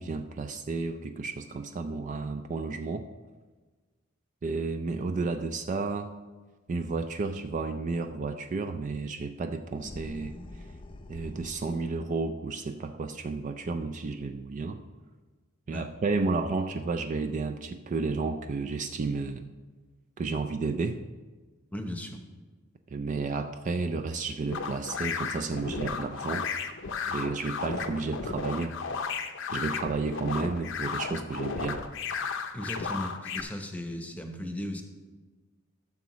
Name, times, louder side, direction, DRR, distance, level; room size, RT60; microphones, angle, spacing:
voice 1, 0.0-3.1 4.4-6.2 6.7-10.7 11.1-14.8 15.7-19.5 20.2-21.0 22.9-26.5 27.1-28.8 29.5-31.8, right 3 dB, 35° right, 7 dB, 0.3 m, -32 dB
sound 1, 9.7-11.9, left 1 dB, 25° left, 0.4 m, -45 dB
voice 2, 21.7-22.2 32.5-34.8, left 1 dB, 5° left, 4 dB, 0.8 m, -36 dB
sound 2, 24.5-33.4, left 5 dB, 60° left, 0.6 m, -34 dB
13.0 x 6.8 x 3.1 m, 1.3 s
head